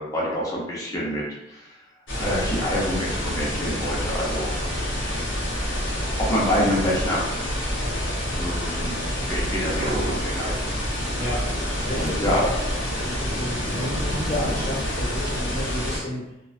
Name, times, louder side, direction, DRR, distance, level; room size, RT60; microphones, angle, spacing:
voice 1, 0.0-1.7 2.2-4.5 6.2-7.2 8.3-9.0 9.3-10.5 11.9-12.4, equal, 20° left, -5 dB, 0.6 m, -26 dB
sound 1, 2.1-16.0, equal, 75° left, 0.7 m, -27 dB
sound 2, 9.6-10.8 11.0-15.4, right 1 dB, 55° right, 0.4 m, -35 dB
voice 2, 11.8-16.2, left 1 dB, 45° left, -9 dB, 0.8 m, -31 dB
2.4 x 2.3 x 2.3 m, 0.89 s
head